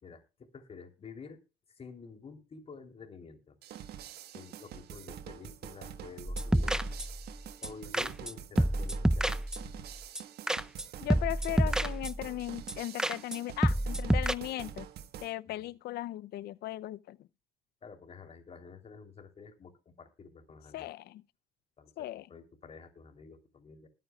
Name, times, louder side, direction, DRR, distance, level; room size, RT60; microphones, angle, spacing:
voice 1, 0.0-1.4 1.7-3.6 4.3-6.9 7.6-9.4 15.5-15.8 17.8-20.9 21.8-23.9, left 5 dB, 35° left, 3.4 m, -50 dB
sound 1, 3.6-15.3, right 10 dB, 70° right, 1.4 m, -46 dB
sound 2, 6.3-7.3 7.6-7.7 7.9-8.3 8.6-9.8 10.2-10.8 11.1-12.3 12.7-12.8 13.0-13.4 13.6-14.3, right 1 dB, 5° right, 0.6 m, -29 dB
voice 2, 11.0-14.9 15.2-17.3 20.7-21.2 22.0-22.3, left 15 dB, 70° left, 0.6 m, -37 dB
21.0 x 9.4 x 2.4 m
cardioid pair, 110°, 17 cm